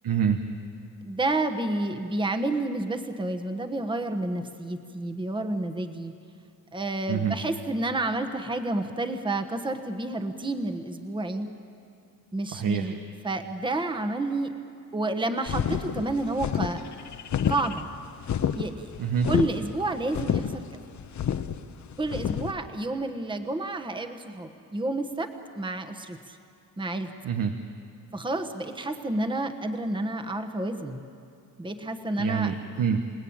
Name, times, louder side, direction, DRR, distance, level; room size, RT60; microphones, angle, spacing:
voice 1, 0.0-0.5 7.1-7.4 12.5-12.9 19.0-19.3 27.2-27.5 32.2-33.0, right 7 dB, 80° right, 6 dB, 1.3 m, -26 dB
voice 2, 1.0-6.1 6.7-11.5 12.3-12.9 13.2-14.5 14.9-16.8 17.5-17.9 18.5-18.9 19.3-20.8 22.0-26.4 26.8-27.1 28.1-31.0 31.6-32.5, right 2 dB, 15° right, 6 dB, 1.3 m, -30 dB
sound 1, 15.5-22.5, left 8 dB, 60° left, 1.0 m, -29 dB
29.0 x 18.5 x 8.8 m, 2.4 s
cardioid pair, 130°, 33 cm